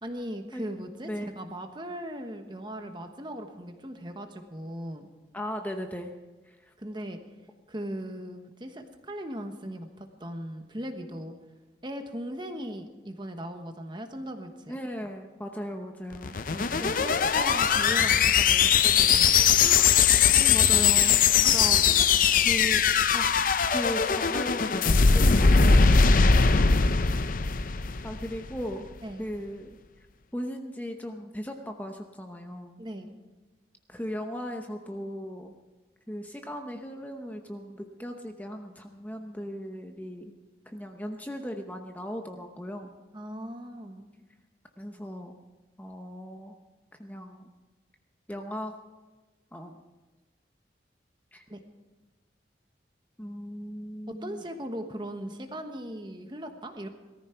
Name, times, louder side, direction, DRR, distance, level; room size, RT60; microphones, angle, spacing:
voice 1, 0.0-5.1 6.8-7.2 7.7-11.3 11.8-14.8 16.5-19.6 21.4-22.1 26.0-26.9 29.0-29.2 32.8-33.2 43.1-44.1 51.5-51.6 54.1-56.9, equal, 25° right, 6 dB, 1.2 m, -39 dB
voice 2, 5.3-6.1 6.4-6.7 14.7-17.0 19.6-20.0 20.3-21.8 22.3-22.8 23.1-26.6 28.0-28.9 29.2-29.8 30.3-32.8 33.9-35.5 36.1-40.4 40.7-42.9 44.8-45.3 45.8-46.5 47.0-47.5 48.3-48.7 49.5-49.8 51.3-51.4 53.2-54.4, equal, 10° left, 4 dB, 0.8 m, -37 dB
sound 1, 16.1-28.5, left 6 dB, 50° left, 0.6 m, -21 dB
18.0 x 14.0 x 4.5 m, 1.2 s
head